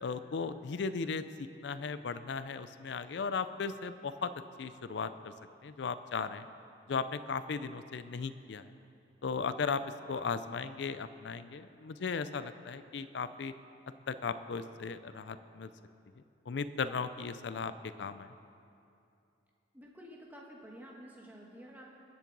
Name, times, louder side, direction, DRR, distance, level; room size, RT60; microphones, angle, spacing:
voice 1, 0.0-4.3 4.6-5.3 5.6-6.5 6.9-8.7 9.2-9.8 10.1-13.5 14.1-15.7 16.5-17.7 18.0-18.3, left 5 dB, 60° left, 13 dB, 0.4 m, -36 dB
voice 2, 19.7-21.9, equal, 10° right, -2 dB, 1.3 m, -50 dB
21.0 x 7.4 x 3.9 m, 2.6 s
head